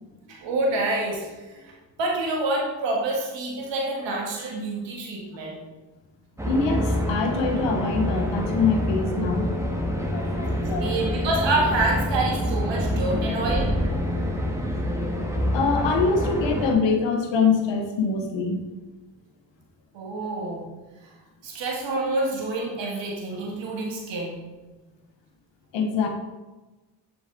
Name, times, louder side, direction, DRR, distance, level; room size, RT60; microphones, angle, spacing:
voice 1, 0.3-1.7 2.0-5.6 10.8-13.7 19.9-20.6 21.4-24.4, right 2 dB, 85° right, -1 dB, 1.5 m, -27 dB
voice 2, 6.4-9.6 9.9-10.9 12.8-12.9 13.2-13.3 15.5-18.6 25.7-26.1, left 4 dB, 85° left, 4 dB, 1.1 m, -24 dB
sound 1, 6.4-16.7, equal, 5° right, 1.4 m, -26 dB
7.1 x 5.1 x 3.7 m, 1.1 s
supercardioid pair, 50°, 43 cm